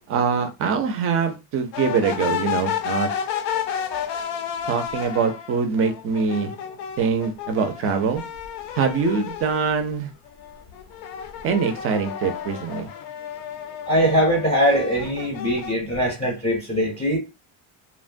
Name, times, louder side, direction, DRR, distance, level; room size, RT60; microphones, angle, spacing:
voice 1, 0.1-3.1 4.7-6.5 7.0-8.2 8.7-10.1 11.4-12.9, right 6 dB, 35° right, 0.4 m, -23 dB
sound 1, 1.7-9.8 10.2-15.7, left 8 dB, 75° left, 0.6 m, -31 dB
voice 2, 13.9-17.2, equal, 15° left, 0.6 m, -21 dB
2.9 x 2.1 x 2.4 m
cardioid pair, 165°, 42 cm